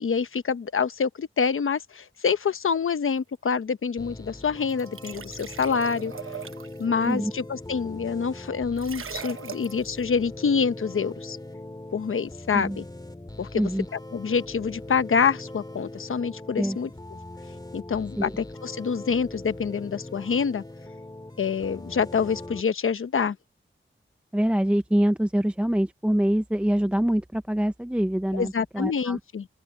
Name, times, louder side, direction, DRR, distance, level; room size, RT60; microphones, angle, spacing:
voice 1, 0.0-6.1 6.8-11.4 11.9-12.8 13.4-13.7 14.1-16.9 17.7-20.6 21.4-23.4 28.3-29.5, left 6 dB, 80° left, 0.9 m, -26 dB
sound 1, 4.0-22.6, left 1 dB, 20° left, 2.4 m, -41 dB
sound 2, 4.7-6.8 8.8-9.9, right 7 dB, 80° right, 1.0 m, -39 dB
voice 2, 13.5-13.9 16.6-16.8 18.2-18.3 24.3-29.2, equal, 5° right, 0.6 m, -25 dB
open air
wide cardioid pair, 85°, 21 cm